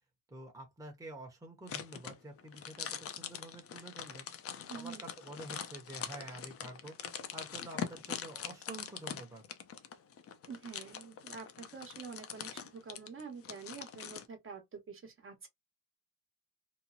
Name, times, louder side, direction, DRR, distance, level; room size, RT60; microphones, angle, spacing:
voice 1, 0.3-7.0 7.3-9.4, right 2 dB, 10° right, 1.0 m, -48 dB
sound 1, 1.7-14.3, left 8 dB, 50° left, 0.6 m, -43 dB
voice 2, 4.7-5.0 10.5-15.5, right 5 dB, 45° right, 1.2 m, -47 dB
3.0 x 2.0 x 2.6 m
cardioid pair, 90°, 30 cm